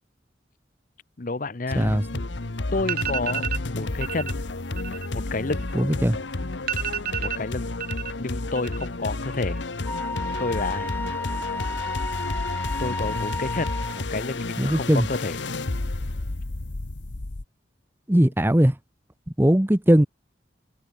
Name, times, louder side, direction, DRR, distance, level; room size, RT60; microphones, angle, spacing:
voice 1, 1.2-2.0 2.7-4.4 5.1-5.7 7.2-7.7 8.2-9.6 10.4-10.9 12.8-15.4, left 3 dB, 45° left, 0.9 m, -30 dB
sound 1, 1.7-17.4, left 2 dB, 90° left, 1.3 m, -31 dB
sound 2, 2.4-2.5 2.8-3.6 4.0-4.3 4.6-6.1 6.4-6.5 6.7-8.1 8.4-9.0 9.3-9.8, right 9 dB, 50° right, 1.3 m, -31 dB
voice 2, 5.7-6.2 14.6-15.1 18.1-18.7 19.4-20.1, equal, 10° right, 0.9 m, -19 dB
Wind instrument woodwind instrument, 9.9-14.1, left 2 dB, 10° left, 6.4 m, -32 dB
head